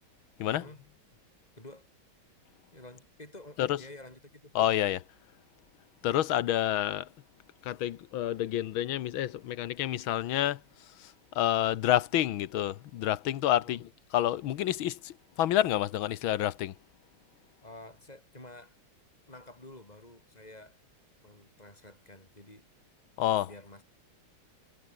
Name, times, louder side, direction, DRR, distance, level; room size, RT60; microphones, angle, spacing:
voice 1, 0.5-0.8 1.5-1.9 2.7-4.5 13.6-13.8 17.6-18.8 19.3-20.8 21.2-22.7 23.4-23.8, left 2 dB, 20° left, 6.1 m, -50 dB
voice 2, 4.5-5.0 6.0-7.1 7.6-10.6 11.3-16.7 23.2-23.5, left 12 dB, 80° left, 1.7 m, -28 dB
omnidirectional pair, 2.2 m